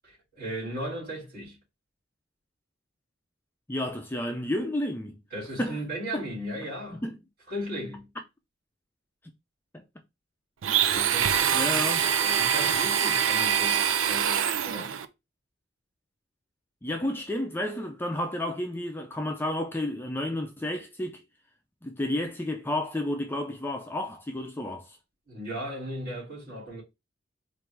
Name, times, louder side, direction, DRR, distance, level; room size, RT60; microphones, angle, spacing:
voice 1, 0.3-1.6 5.3-7.0 7.5-8.1 10.9-15.0 25.3-26.8, right 1 dB, 50° right, 2.8 m, -36 dB
voice 2, 3.7-5.2 5.6-5.8 6.1-6.2 7.0-7.2 9.7-9.8 11.5-12.0 16.8-21.2 21.8-25.0, left 1 dB, 10° left, 0.4 m, -31 dB
Domestic sounds home sounds, 10.6-15.1, right 8 dB, 85° right, 0.5 m, -24 dB
4.4 x 2.6 x 3.4 m
head